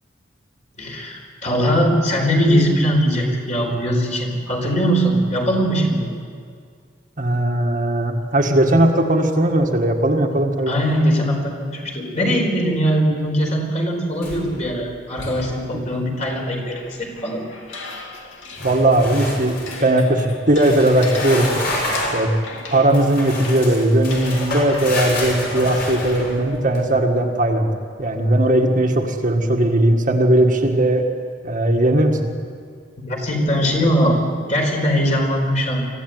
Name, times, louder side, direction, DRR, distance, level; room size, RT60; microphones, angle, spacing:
voice 1, 0.8-6.1 10.7-17.4 33.1-34.2 34.5-35.8, equal, 40° left, 0 dB, 4.5 m, -20 dB
voice 2, 7.2-10.7 15.7-15.8 18.6-21.6 22.1-22.3 22.7-27.7 28.0-31.1 31.4-32.2, right 1 dB, 45° right, 2 dB, 1.8 m, -18 dB
sound 1, 14.2-14.7 15.0-15.4 18.5-19.8 20.5-22.2 22.9-26.8, left 1 dB, 55° left, 6.7 m, -28 dB
sound 2, 15.2-19.0 19.4-25.2, left 3 dB, 85° left, 2.9 m, -38 dB
24.5 x 15.0 x 9.3 m, 2.1 s
head